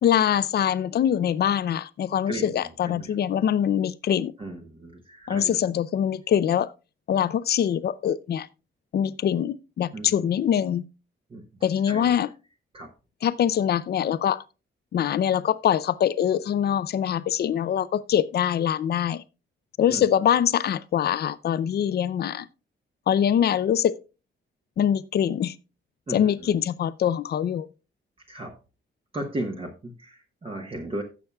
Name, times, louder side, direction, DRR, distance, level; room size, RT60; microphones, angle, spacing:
voice 1, 0.0-4.3 5.3-6.7 7.1-8.5 8.9-10.8 11.6-12.3 13.2-14.4 14.9-19.2 19.8-22.5 23.1-24.0 24.8-25.5 26.1-27.7, left 9 dB, 50° left, 0.5 m, -23 dB
voice 2, 2.3-3.2 4.4-5.6 9.9-10.3 11.3-11.4 11.8-12.1 12.7-12.9 19.9-20.0 26.1-26.5 28.3-28.6 29.1-31.0, right 1 dB, 25° right, 1.1 m, -35 dB
16.5 x 6.9 x 2.3 m
wide cardioid pair, 155°, 21 cm